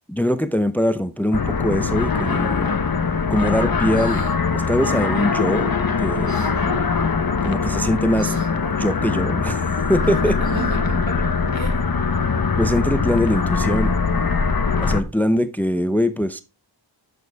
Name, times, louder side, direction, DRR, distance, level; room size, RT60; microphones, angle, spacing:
voice 1, 0.1-2.7 3.3-4.3 4.5-5.7 6.0-6.3 7.4-8.3 8.7-10.4 12.6-14.0 14.8-16.4, equal, 5° left, 0.6 m, -22 dB
sound 1, 1.3-15.0, left 5 dB, 50° left, 1.1 m, -22 dB
sound 2, 3.9-4.4 6.3-6.5 8.2-8.5 10.4-11.0, right 2 dB, 40° right, 1.5 m, -35 dB
voice 2, 6.2-6.8 10.1-11.2 11.5-11.9, equal, 80° right, 3.8 m, -33 dB
10.5 x 6.9 x 3.5 m
wide cardioid pair, 70°, 46 cm